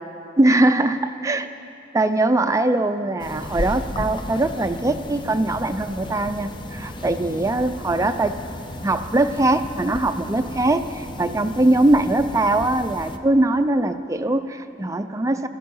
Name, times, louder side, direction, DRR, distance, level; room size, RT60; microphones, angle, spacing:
voice 1, 0.4-1.5 1.9-8.4 8.8-15.5, right 2 dB, 15° right, 9 dB, 0.4 m, -21 dB
sound 1, 3.2-13.2, left 1 dB, 25° left, 0.6 m, -34 dB
16.5 x 13.5 x 5.5 m, 2.7 s
head